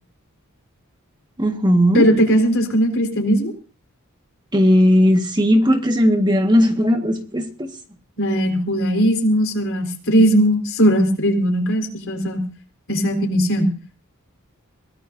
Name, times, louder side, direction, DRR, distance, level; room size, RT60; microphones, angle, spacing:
voice 1, 1.4-2.1 4.5-7.7, equal, 20° right, 5 dB, 1.7 m, -17 dB
voice 2, 1.9-3.5 8.2-12.4 12.9-13.7, equal, 65° left, 4 dB, 4.5 m, -18 dB
23.0 x 18.0 x 2.7 m, 0.37 s
head